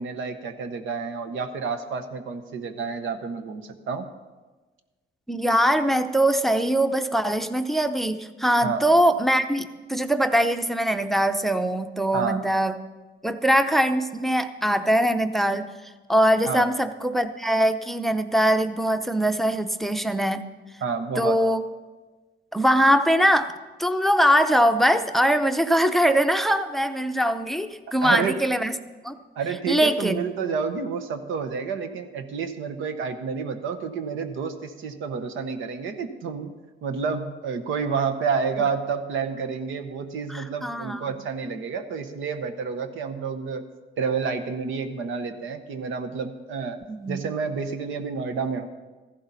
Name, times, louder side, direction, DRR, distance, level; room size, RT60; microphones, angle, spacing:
voice 1, 0.0-4.1 8.6-8.8 12.1-12.4 16.5-16.7 20.8-21.4 28.0-28.4 29.4-36.5 36.8-43.7 44.0-46.8 47.1-48.7, right 5 dB, 80° right, 8 dB, 1.0 m, -29 dB
voice 2, 5.3-12.7 13.2-15.7 16.1-20.4 21.2-21.6 22.5-23.5 23.8-28.8 29.0-29.2 29.7-30.3 40.3-41.2 46.9-47.2, equal, ahead, 9 dB, 0.6 m, -22 dB
14.5 x 11.5 x 4.1 m, 1.3 s
cardioid pair, 90°, 20 cm